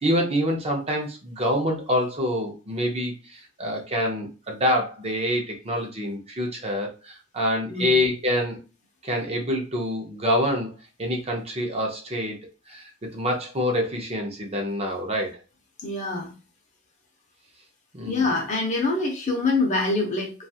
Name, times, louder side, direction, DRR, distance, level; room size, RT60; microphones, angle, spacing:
voice 1, 0.0-8.6 9.0-10.7 11.0-12.4 12.7-15.4 17.9-18.2, equal, 30° right, 2 dB, 0.7 m, -26 dB
voice 2, 7.7-8.0 15.8-16.3 18.1-20.3, left 3 dB, 40° left, 0 dB, 0.7 m, -25 dB
2.5 x 2.4 x 2.7 m, 0.33 s
head